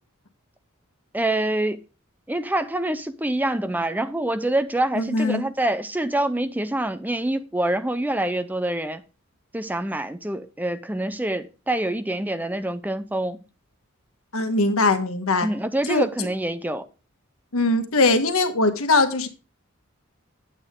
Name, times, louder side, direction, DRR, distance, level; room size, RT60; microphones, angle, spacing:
voice 1, 1.1-1.8 2.3-9.0 9.5-13.4 15.4-16.9, right 1 dB, 10° right, 0.5 m, -26 dB
voice 2, 5.0-5.5 14.3-15.5 15.9-16.3 17.5-19.3, left 2 dB, 85° left, 1.3 m, -21 dB
8.8 x 8.6 x 3.6 m
head